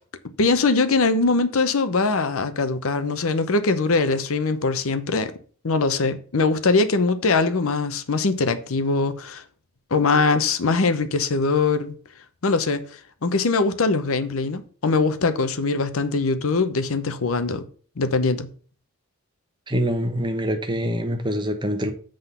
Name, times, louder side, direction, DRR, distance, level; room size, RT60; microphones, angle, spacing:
voice 1, 0.4-5.3 5.6-9.4 9.9-12.0 12.4-17.6 18.0-18.5, left 3 dB, 70° left, 0.7 m, -22 dB
voice 2, 19.7-21.9, equal, 20° right, 1.0 m, -25 dB
7.8 x 3.8 x 6.8 m
head